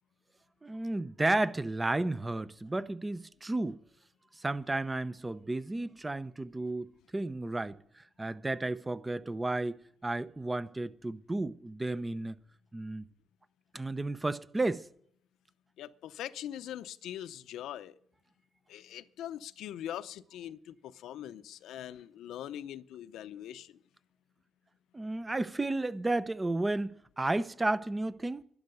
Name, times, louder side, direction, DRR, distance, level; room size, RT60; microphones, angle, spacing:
voice 1, 0.6-3.8 4.4-12.4 12.7-13.0 13.7-14.9 24.9-28.4, right 2 dB, 20° right, 0.7 m, -33 dB
voice 2, 15.8-18.0 18.7-23.8, left 11 dB, 80° left, 0.7 m, -42 dB
12.0 x 11.5 x 6.9 m
cardioid pair, 90°, 0 cm